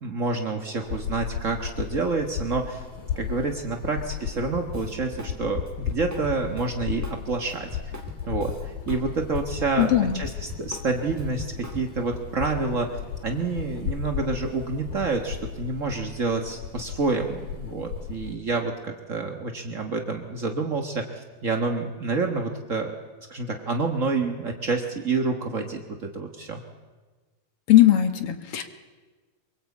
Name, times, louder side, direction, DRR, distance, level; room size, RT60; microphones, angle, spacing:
voice 1, 0.0-2.8 3.2-7.7 8.3-22.9 23.3-26.6, right 3 dB, 75° right, 3 dB, 0.7 m, -28 dB
sound 1, 0.8-18.4, left 8 dB, 90° left, 3.7 m, -35 dB
Drum kit, 4.7-5.4 5.6-9.0 9.3-12.1, equal, 5° right, 2.2 m, -41 dB
voice 2, 9.8-10.2 27.7-28.6, left 13 dB, 55° left, 8 dB, 1.9 m, -18 dB
24.0 x 23.0 x 8.4 m, 1.3 s
omnidirectional pair, 3.8 m